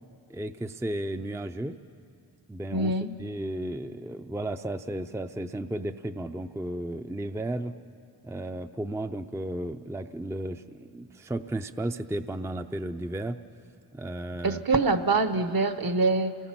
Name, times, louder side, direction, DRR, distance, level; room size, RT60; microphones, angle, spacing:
voice 1, 0.3-1.8 2.5-2.9 3.2-7.8 8.2-13.4 13.9-14.6, right 1 dB, 5° right, 8 dB, 0.5 m, -34 dB
voice 2, 2.7-3.1 14.4-16.4, right 3 dB, 55° right, 10 dB, 1.1 m, -24 dB
28.0 x 18.5 x 6.1 m, 2.5 s
cardioid pair, 65°, 43 cm